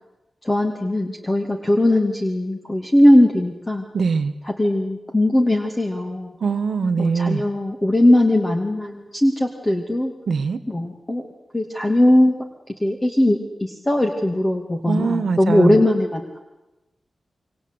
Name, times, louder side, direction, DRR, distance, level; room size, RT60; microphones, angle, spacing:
voice 1, 0.4-3.8 4.4-6.3 7.0-10.1 10.7-11.3 11.5-12.4 12.8-16.4, left 1 dB, 15° left, 3 dB, 2.4 m, -19 dB
voice 2, 3.9-4.3 6.4-7.4 10.3-10.6 14.9-15.8, right 5 dB, 75° right, 13 dB, 1.6 m, -22 dB
28.0 x 24.0 x 8.3 m, 0.99 s
wide cardioid pair, 115°, 0 cm